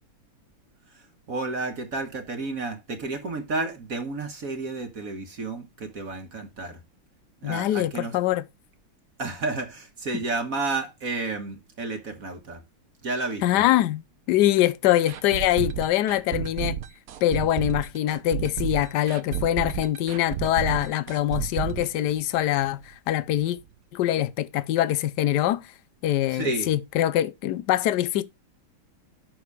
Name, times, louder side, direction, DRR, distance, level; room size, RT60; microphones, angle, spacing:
voice 1, 0.9-6.8 7.4-8.1 9.2-12.6 13.0-13.4 26.3-26.7, right 3 dB, 45° right, 1.6 m, -31 dB
voice 2, 7.4-8.4 13.4-16.8 17.2-23.6 23.9-25.6 26.0-28.2, left 13 dB, 70° left, 1.0 m, -24 dB
sound 1, 15.1-22.8 23.1-23.2 23.6-23.7, right 10 dB, 70° right, 0.8 m, -31 dB
7.9 x 6.4 x 4.7 m
omnidirectional pair, 2.4 m